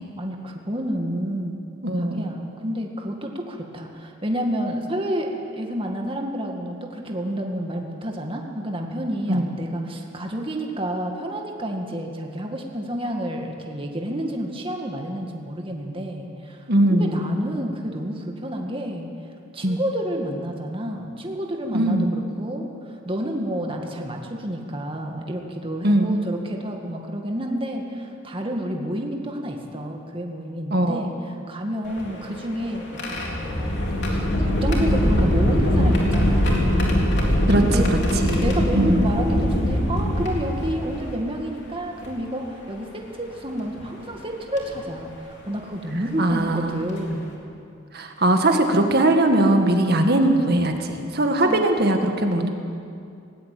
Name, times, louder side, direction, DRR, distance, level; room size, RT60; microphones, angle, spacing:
voice 1, 0.2-1.6 2.0-16.6 16.9-19.1 19.5-31.1 31.5-36.9 37.5-37.9 38.3-47.3 51.4-51.7, equal, 25° right, 2 dB, 2.1 m, -29 dB
voice 2, 1.8-2.3 9.3-9.5 16.7-17.3 19.6-19.8 21.7-22.1 25.8-26.1 30.7-31.1 37.5-37.8 38.2-38.4 38.7-39.1 46.2-46.8 47.9-52.5, right 1 dB, 50° right, 4 dB, 2.0 m, -20 dB
sound 1, 31.8-41.1 42.0-42.1 43.6-43.8 44.6-44.8 46.4-46.5 46.9-47.1, equal, 60° left, 3.6 m, -22 dB
19.0 x 18.5 x 8.5 m, 2.5 s
head